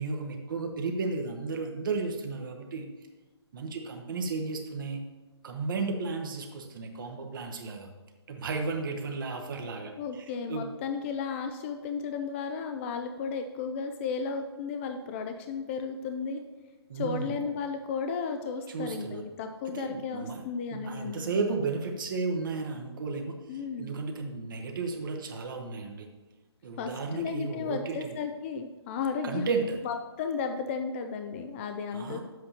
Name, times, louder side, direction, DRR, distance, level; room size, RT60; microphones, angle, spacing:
voice 1, 0.0-2.9 3.5-5.0 5.4-7.9 8.3-10.7 16.9-17.4 18.7-19.2 19.7-20.4 20.7-26.1 26.6-28.1 29.2-29.8 31.9-32.2, right 4 dB, 50° right, 3 dB, 0.9 m, -33 dB
voice 2, 10.0-16.4 16.9-21.2 23.5-23.9 26.8-29.5 29.8-32.2, left 5 dB, 25° left, 6 dB, 0.4 m, -34 dB
9.6 x 7.7 x 2.9 m, 1.2 s
figure-of-eight pair, 135°, 14 cm